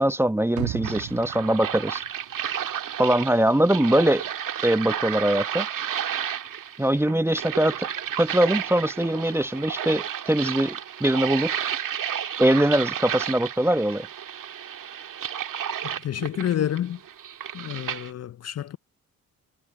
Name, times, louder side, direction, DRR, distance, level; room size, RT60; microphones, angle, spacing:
voice 1, 0.0-2.0 3.0-4.2 4.6-5.7 6.8-7.9 8.2-11.6 12.4-14.1, right 1 dB, 5° right, 0.9 m, -22 dB
sound 1, 0.6-2.7 3.1-3.2, right 15 dB, 90° right, 1.8 m, -35 dB
sound 2, 0.8-18.1, right 9 dB, 65° right, 1.9 m, -32 dB
voice 2, 16.0-17.0 17.5-18.8, left 10 dB, 45° left, 0.6 m, -28 dB
supercardioid pair, 60°, 35 cm